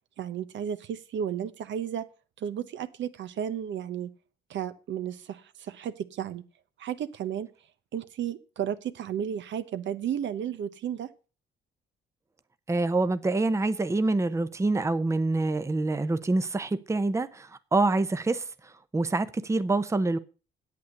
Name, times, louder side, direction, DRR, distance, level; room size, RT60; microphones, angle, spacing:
voice 1, 0.2-2.1 2.4-4.1 4.5-6.4 6.8-7.5 7.9-11.1, right 9 dB, 70° right, 0.9 m, -33 dB
voice 2, 12.7-20.2, right 2 dB, 15° right, 0.7 m, -26 dB
8.5 x 8.3 x 6.5 m
cardioid pair, 90°, 20 cm